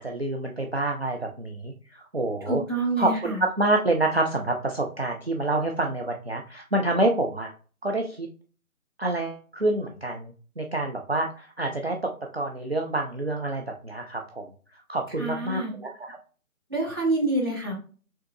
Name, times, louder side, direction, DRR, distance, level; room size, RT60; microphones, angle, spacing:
voice 1, 0.0-2.6 3.0-7.5 7.8-8.3 9.0-12.0 12.3-14.4 14.9-16.2, right 2 dB, 45° right, 1 dB, 0.5 m, -27 dB
voice 2, 2.5-3.4 15.2-15.7 16.7-17.7, right 2 dB, 15° right, -7 dB, 0.9 m, -27 dB
5.3 x 3.6 x 2.6 m, 0.39 s
figure-of-eight pair, 155°, 44 cm